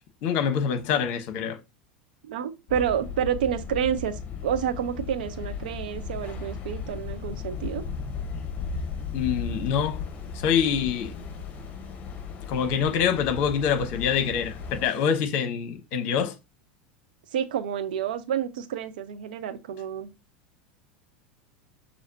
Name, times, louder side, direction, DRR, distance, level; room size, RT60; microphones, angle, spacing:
voice 1, 0.2-1.6 9.1-10.0 10.3-11.1 12.5-14.5 14.8-16.3, left 7 dB, 50° left, 1.0 m, -25 dB
voice 2, 2.2-7.8 17.3-20.1, right 9 dB, 65° right, 0.7 m, -29 dB
sound 1, 2.7-14.9, left 5 dB, 35° left, 1.2 m, -36 dB
6.3 x 2.9 x 2.8 m
figure-of-eight pair, 85°, 5 cm